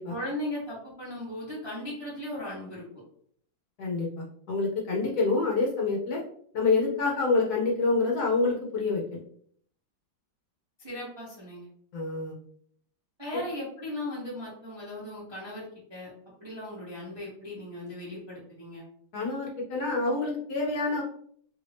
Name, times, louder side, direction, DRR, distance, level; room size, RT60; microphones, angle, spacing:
voice 1, 0.1-2.8 10.8-11.7 13.2-16.1 16.4-18.9, left 1 dB, 25° right, -7 dB, 0.6 m, -37 dB
voice 2, 3.8-6.2 6.5-9.2 11.9-12.4 19.1-21.0, left 3 dB, 65° left, -2 dB, 1.1 m, -27 dB
3.1 x 2.6 x 3.3 m, 0.62 s
omnidirectional pair, 2.0 m